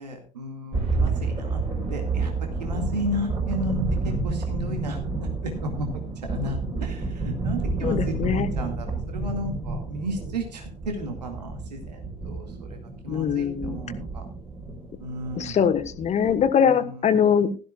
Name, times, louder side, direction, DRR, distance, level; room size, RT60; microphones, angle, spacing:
voice 1, 0.0-1.6 1.9-2.3 2.6-3.8 4.0-12.4 12.7-12.8 13.0-14.2 15.0-15.6 16.6-17.0, equal, 75° right, 4 dB, 2.1 m, -34 dB
sound 1, 0.7-16.5, right 3 dB, 25° right, 4.5 m, -30 dB
voice 2, 7.8-8.5 13.1-13.8 15.3-17.6, left 7 dB, 30° left, 11 dB, 1.3 m, -22 dB
16.0 x 13.0 x 2.4 m, 0.34 s
figure-of-eight pair, 65°, 21 cm